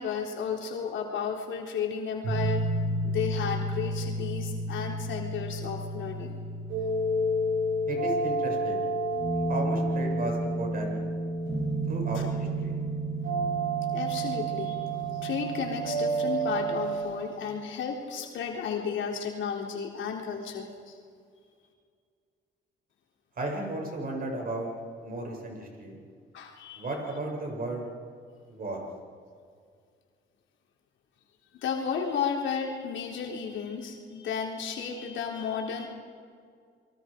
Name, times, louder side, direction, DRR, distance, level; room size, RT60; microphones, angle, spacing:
voice 1, 0.0-2.7 3.0-6.4 12.2-12.3 13.9-14.8 15.1-21.0 26.3-26.9 31.5-35.9, left 6 dB, 75° left, 0 dB, 3.8 m, -33 dB
sound 1, 2.2-16.9, right 2 dB, 85° right, 6.6 m, -30 dB
voice 2, 7.9-8.8 9.5-11.0 11.9-12.7 23.4-24.7 25.0-26.0 26.8-27.9 28.5-28.8, right 2 dB, 45° right, 1 dB, 7.5 m, -34 dB
29.0 x 23.0 x 5.2 m, 2.2 s
cardioid pair, 90°, 20 cm